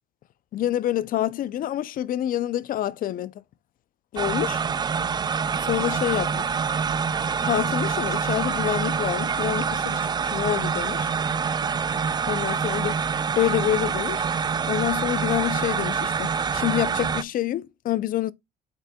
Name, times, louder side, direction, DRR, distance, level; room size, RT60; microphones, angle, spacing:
voice 1, 0.5-3.3 4.1-4.6 5.6-6.5 7.4-11.1 12.3-12.9 13.3-18.3, left 13 dB, 55° left, 0.5 m, -27 dB
sound 1, 4.2-17.2, right 6 dB, 25° right, 0.4 m, -26 dB
7.7 x 5.8 x 2.3 m
cardioid pair, 110°, 17 cm